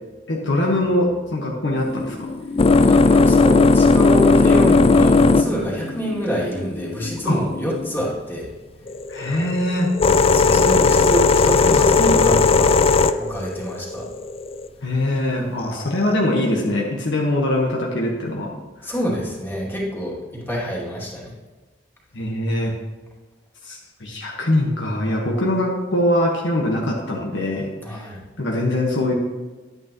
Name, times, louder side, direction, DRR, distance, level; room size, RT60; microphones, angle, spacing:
voice 1, 0.3-2.3 7.2-7.4 9.1-9.9 10.7-10.9 11.4-11.6 14.8-18.5 18.8-18.9 22.1-22.7 23.6-28.1 28.4-29.1, left 1 dB, 70° left, -2 dB, 1.4 m, -22 dB
sound 1, 1.8-8.1 8.9-14.7 15.6-16.1, left 3 dB, 30° left, 0.4 m, -17 dB
voice 2, 2.7-8.5 8.8-8.9 9.2-9.5 10.3-12.8 13.2-14.1 18.8-21.3 27.8-28.2, equal, 10° left, -5 dB, 2.4 m, -26 dB
11.0 x 9.5 x 3.0 m, 1.3 s
head